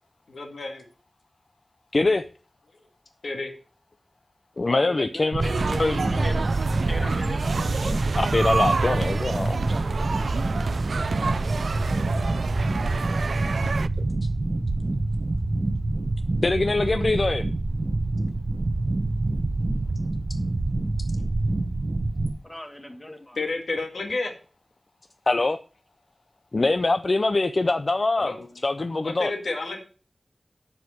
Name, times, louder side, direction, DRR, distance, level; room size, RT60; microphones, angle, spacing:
voice 1, 0.3-0.9 2.7-2.8 3.2-3.5 10.4-10.5 23.4-24.3 28.2-28.4 29.0-29.8, left 3 dB, 85° left, 2.1 m, -30 dB
voice 2, 1.9-2.2 4.6-5.4 5.8-6.2 7.8-9.6 12.3-12.4 16.4-17.4 23.1-23.2 25.3-25.6 26.5-29.3, left 2 dB, 45° left, 0.6 m, -24 dB
voice 3, 4.6-6.5 6.9-8.2 22.4-23.4, left 1 dB, 15° left, 1.8 m, -37 dB
sound 1, 5.3-22.3, right 2 dB, 45° right, 1.2 m, -26 dB
sound 2, 5.4-13.9, right 4 dB, 90° right, 0.4 m, -29 dB
12.0 x 4.9 x 6.3 m
wide cardioid pair, 85°, 0 cm